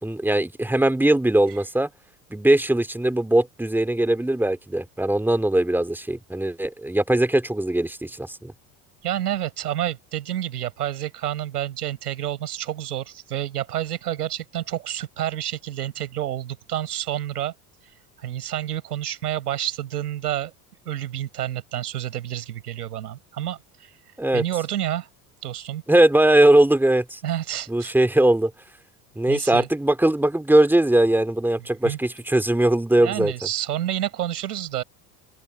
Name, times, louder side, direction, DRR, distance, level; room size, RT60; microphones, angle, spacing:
voice 1, 0.0-1.9 2.3-8.5 24.2-24.4 25.9-27.2 27.7-28.5 29.2-33.3, right 1 dB, 5° right, 3.0 m, -20 dB
voice 2, 9.0-17.5 18.2-20.5 20.8-23.9 24.3-25.1 25.4-25.8 27.2-27.9 29.3-29.7 31.8-32.0 33.0-34.8, right 12 dB, 90° right, 6.4 m, -29 dB
open air
hypercardioid pair, 80°, 45 cm